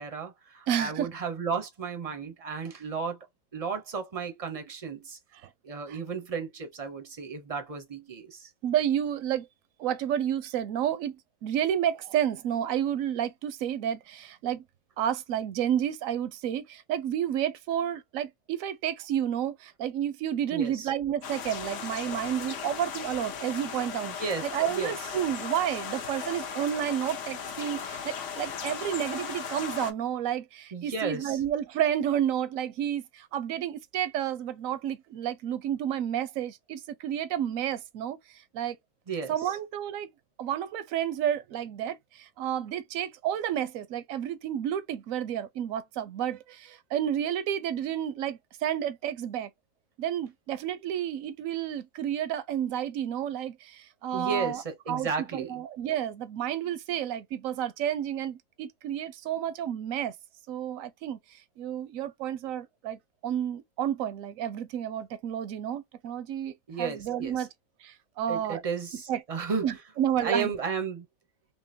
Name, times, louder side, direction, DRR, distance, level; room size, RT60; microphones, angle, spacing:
voice 1, 0.0-3.2 3.5-5.2 5.6-8.5 20.5-20.9 24.0-25.0 30.7-31.4 39.1-39.3 54.1-55.6 66.7-67.5 68.3-69.7 70.2-71.1, right 5 dB, 40° right, 0.5 m, -33 dB
voice 2, 0.7-1.1 5.9-6.0 8.6-9.5 9.8-14.6 15.0-24.1 24.4-38.8 39.3-40.1 40.4-49.5 50.0-54.6 54.9-60.1 60.5-67.5 67.8-68.6 69.1-69.2 69.6-70.5, right 10 dB, 70° right, 0.9 m, -31 dB
sound 1, 21.2-29.9, left 7 dB, 60° left, 0.9 m, -37 dB
3.7 x 3.0 x 2.7 m
omnidirectional pair, 1.7 m